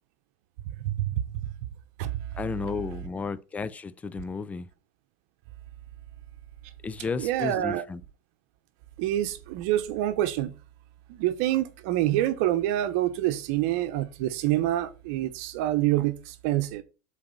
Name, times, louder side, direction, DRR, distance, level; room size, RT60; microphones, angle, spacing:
voice 1, 0.6-1.4 2.0-2.1 7.2-7.8 9.0-10.5 11.1-16.8, right 14 dB, 65° right, 0.9 m, -27 dB
voice 2, 2.3-4.7 6.8-8.0, left 4 dB, 15° left, 0.5 m, -33 dB
7.7 x 4.2 x 5.7 m
supercardioid pair, 120°, 9 cm